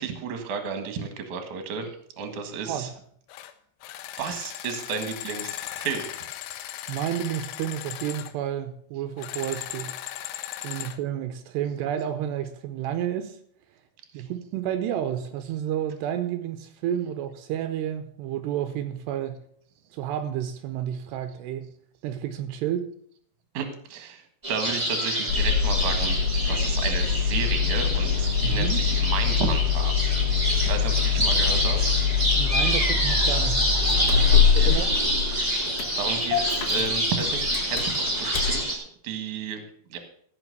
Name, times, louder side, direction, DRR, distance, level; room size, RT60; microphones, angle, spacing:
voice 1, 0.0-2.9 4.2-6.1 10.7-10.8 14.1-14.3 23.5-26.2 26.4-30.0 30.3-31.9 34.3-34.7 35.5-40.0, right 6 dB, 55° right, 2.6 m, -33 dB
sound 1, 3.3-3.5 3.8-8.3 9.2-11.0, left 13 dB, 85° left, 2.8 m, -37 dB
voice 2, 6.9-10.0 10.6-13.4 13.7-13.8 14.1-19.4 19.9-21.7 22.0-22.9 28.4-28.8 32.3-33.7 34.0-35.0, right 10 dB, 85° right, 2.8 m, -30 dB
sound 2, 24.4-38.7, equal, 15° right, 1.6 m, -27 dB
Engine starting, 25.3-38.6, left 7 dB, 65° left, 3.1 m, -24 dB
15.0 x 6.1 x 6.7 m
omnidirectional pair, 5.0 m